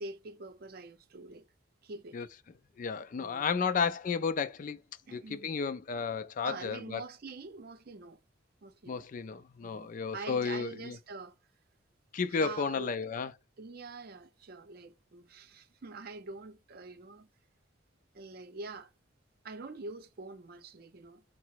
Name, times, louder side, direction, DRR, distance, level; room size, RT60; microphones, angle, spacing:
voice 1, 0.0-1.5 1.8-2.2 3.2-3.7 5.1-5.5 6.4-8.2 8.6-9.1 9.6-11.4 12.3-12.9 13.6-17.3 18.1-18.9 19.4-21.2, right 3 dB, 50° right, 0.5 m, -45 dB
voice 2, 2.8-4.8 5.1-7.0 8.9-11.0 12.1-13.3, left 5 dB, 45° left, 0.3 m, -33 dB
4.8 x 2.0 x 4.4 m
head